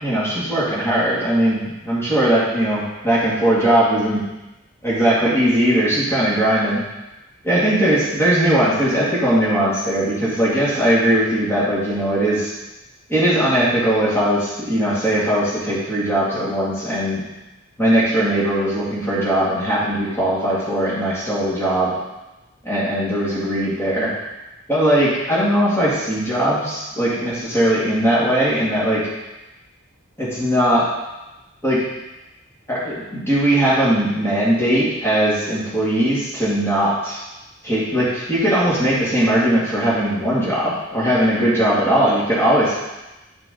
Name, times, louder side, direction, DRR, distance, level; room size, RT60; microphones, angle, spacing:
voice 1, 0.0-4.2 4.8-6.8 7.4-12.5 13.1-17.2 17.8-21.9 22.6-24.1 24.7-29.0 30.2-30.9 31.6-31.8 32.7-37.2 37.6-42.8, right 1 dB, 10° left, -9 dB, 2.4 m, -19 dB
9.1 x 4.9 x 3.9 m, 1.0 s
head